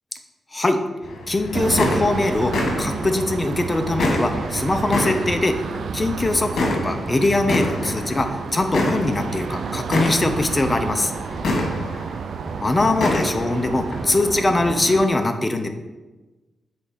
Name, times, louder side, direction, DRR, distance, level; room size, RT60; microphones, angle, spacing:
sound 1, 1.0-14.2, left 2 dB, 80° left, 1.5 m, -28 dB
voice 1, 1.3-5.6 5.9-11.1 12.6-15.7, left 2 dB, 25° left, 6 dB, 0.7 m, -22 dB
sound 2, 1.5-15.1, right 6 dB, 70° right, 0.4 m, -30 dB
7.6 x 4.2 x 5.0 m, 1.2 s
cardioid pair, 100°, 0 cm